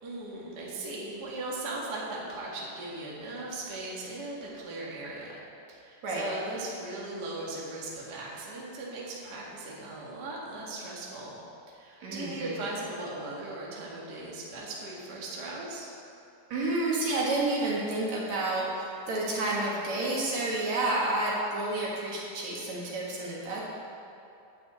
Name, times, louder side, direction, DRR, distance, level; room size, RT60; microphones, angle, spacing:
voice 1, 0.0-5.4 5.7-11.3 11.7-15.9, right 2 dB, 35° right, -5 dB, 2.0 m, -38 dB
voice 2, 12.0-12.5 16.5-23.6, right 2 dB, 60° right, -5 dB, 2.9 m, -30 dB
10.5 x 6.4 x 8.2 m, 2.7 s
omnidirectional pair, 3.8 m